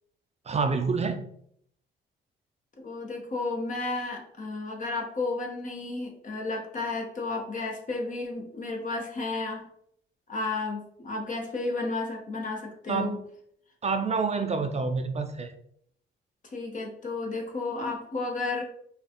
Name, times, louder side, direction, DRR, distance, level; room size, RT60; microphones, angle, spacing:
voice 1, 0.5-1.2 12.9-13.2 13.8-15.5, right 4 dB, 35° right, 7 dB, 0.4 m, -27 dB
voice 2, 2.8-9.6 10.3-13.2 16.5-18.6, left 3 dB, 40° left, 1 dB, 1.2 m, -32 dB
5.0 x 2.4 x 2.9 m, 0.68 s
cardioid pair, 90°, 20 cm